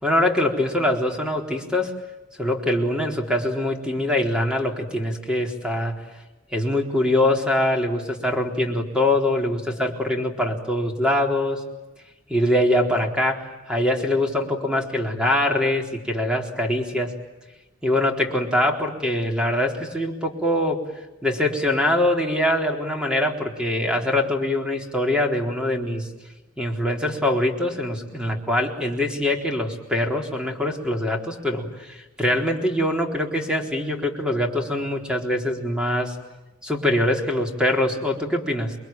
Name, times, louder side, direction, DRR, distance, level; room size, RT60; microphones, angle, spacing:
voice 1, 0.0-1.9 2.4-6.0 6.5-11.6 12.3-17.1 17.8-20.8 21.2-26.1 26.6-36.2 36.6-38.8, left 1 dB, 5° right, 2 dB, 4.0 m, -23 dB
29.0 x 23.0 x 9.1 m, 1.1 s
head